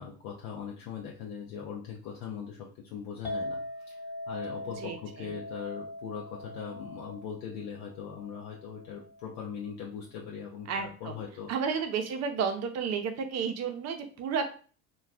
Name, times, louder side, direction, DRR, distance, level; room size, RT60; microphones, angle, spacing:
voice 1, 0.0-4.0 4.3-11.5, left 7 dB, 55° left, -1 dB, 0.6 m, -40 dB
Chink clink, 3.3-9.5, left 1 dB, 10° left, 0.9 m, -41 dB
voice 2, 4.8-5.3 10.7-11.2 11.5-14.5, right 6 dB, 40° right, 6 dB, 0.6 m, -32 dB
2.3 x 2.3 x 3.3 m, 0.40 s
hypercardioid pair, 75°, 42 cm